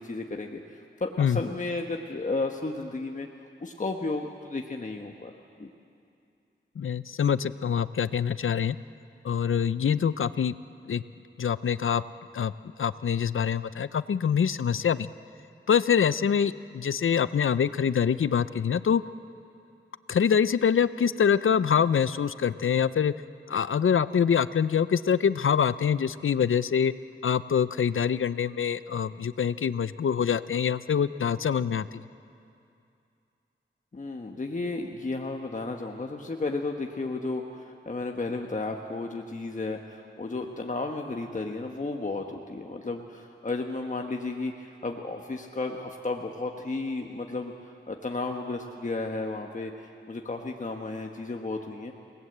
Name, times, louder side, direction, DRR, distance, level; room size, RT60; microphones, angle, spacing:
voice 1, 0.0-3.3 3.6-5.3 5.6-5.7 33.9-47.5 47.9-51.9, left 3 dB, 40° left, 2 dB, 1.3 m, -33 dB
voice 2, 6.8-8.8 9.2-10.5 10.9-11.0 11.4-12.0 12.3-12.5 12.8-15.1 15.7-19.0 20.1-23.1 23.5-26.9 27.2-31.9, left 7 dB, 85° left, 15 dB, 0.6 m, -25 dB
28.5 x 19.0 x 8.0 m, 2.5 s
wide cardioid pair, 100°, 20 cm